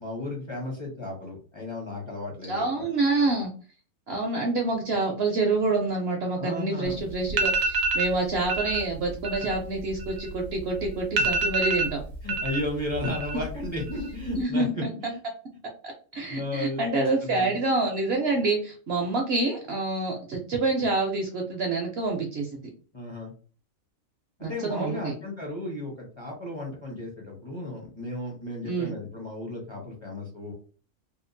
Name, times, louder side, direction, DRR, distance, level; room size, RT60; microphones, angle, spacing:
voice 1, 0.0-2.9 6.4-7.0 12.2-15.2 16.3-17.5 22.9-23.3 24.4-30.5, left 2 dB, 30° left, -1 dB, 0.6 m, -34 dB
voice 2, 2.5-3.5 4.1-12.0 14.3-14.9 15.8-22.6 24.4-25.1 28.6-28.9, right 3 dB, 65° right, 2 dB, 0.7 m, -27 dB
sound 1, 6.9-7.0 7.3-8.1 8.5-8.8 9.1-10.6 10.9-11.0 11.2-12.6 12.9-13.5 13.8-14.3, right 3 dB, 80° right, 1.0 m, -26 dB
2.8 x 2.3 x 2.5 m, 0.39 s
omnidirectional pair, 1.4 m